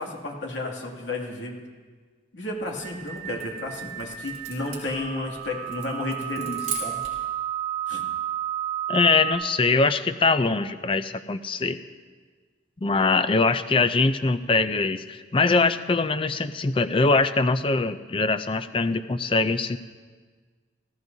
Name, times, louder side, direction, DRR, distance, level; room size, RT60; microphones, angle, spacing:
voice 1, 0.0-1.6 2.3-7.0 7.9-8.0, left 2 dB, 70° left, -1 dB, 2.4 m, -32 dB
sound 1, 2.6-7.3, right 5 dB, 35° right, 3.9 m, -39 dB
sound 2, 2.8-9.3, right 11 dB, 50° right, 4.2 m, -32 dB
voice 2, 8.9-11.8 12.8-19.8, left 3 dB, 25° left, 11 dB, 0.4 m, -22 dB
18.5 x 14.5 x 2.7 m, 1.5 s
head